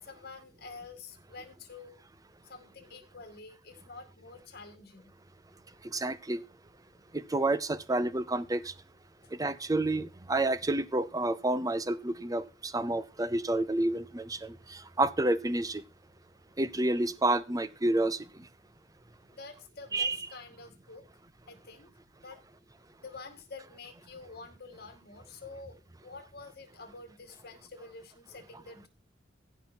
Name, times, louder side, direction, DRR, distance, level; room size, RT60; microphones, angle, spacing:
voice 1, 0.0-2.0 2.4-5.1 9.2-9.3 19.3-21.0 21.5-21.9 22.2-22.4 23.0-28.9, left 3 dB, 60° left, 2.2 m, -48 dB
voice 2, 5.9-6.4 7.1-8.6 9.4-14.5 15.0-15.8 16.6-18.2 19.9-20.2, right 2 dB, 20° right, 0.6 m, -29 dB
15.0 x 5.6 x 4.5 m
head